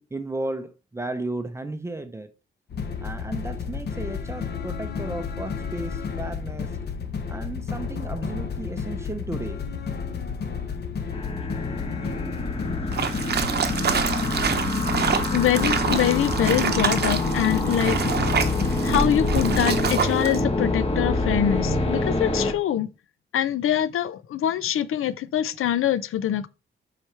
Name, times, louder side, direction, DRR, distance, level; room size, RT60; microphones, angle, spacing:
voice 1, 0.0-2.3 3.0-6.8 7.3-9.6 11.4-11.5, right 2 dB, 15° right, 0.5 m, -34 dB
Lurker of the Depths (Cinematic Music), 2.7-19.9, left 6 dB, 50° left, 1.0 m, -32 dB
sound 1, 11.1-22.5, left 2 dB, 25° left, 1.0 m, -26 dB
sound 2, 12.9-20.4, right 7 dB, 50° right, 0.8 m, -27 dB
voice 2, 15.3-18.3 18.8-22.9 23.3-26.5, left 10 dB, 85° left, 0.5 m, -24 dB
7.5 x 4.9 x 3.2 m
wide cardioid pair, 180°, 21 cm